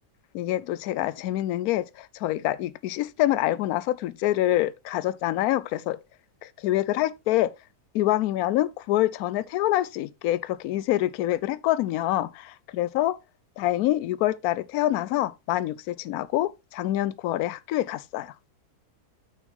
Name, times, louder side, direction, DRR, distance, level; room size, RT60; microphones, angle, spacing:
voice 1, 0.3-6.0 6.4-7.5 7.9-13.2 13.6-18.3, left 14 dB, 75° left, 1.0 m, -26 dB
7.2 x 6.1 x 3.5 m
omnidirectional pair, 1.7 m